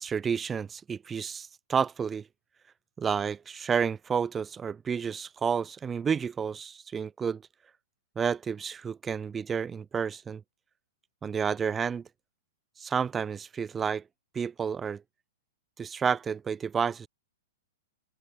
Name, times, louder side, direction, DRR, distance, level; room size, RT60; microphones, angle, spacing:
voice 1, 0.0-2.3 3.0-7.4 8.1-10.4 11.2-12.1 12.8-14.0 14.3-15.0 15.8-17.1, right 6 dB, 15° right, 5.0 m, -30 dB
open air
figure-of-eight pair, 105°, 0 cm